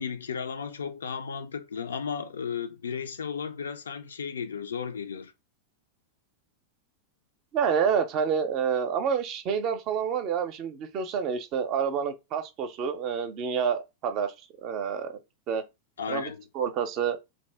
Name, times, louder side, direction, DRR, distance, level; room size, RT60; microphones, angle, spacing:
voice 1, 0.0-5.3 16.0-16.5, left 6 dB, 70° left, 0.3 m, -34 dB
voice 2, 7.5-14.3 14.6-15.2 15.5-15.6 16.1-17.2, right 7 dB, 40° right, 0.5 m, -28 dB
2.6 x 2.6 x 3.3 m
figure-of-eight pair, 90°, 0 cm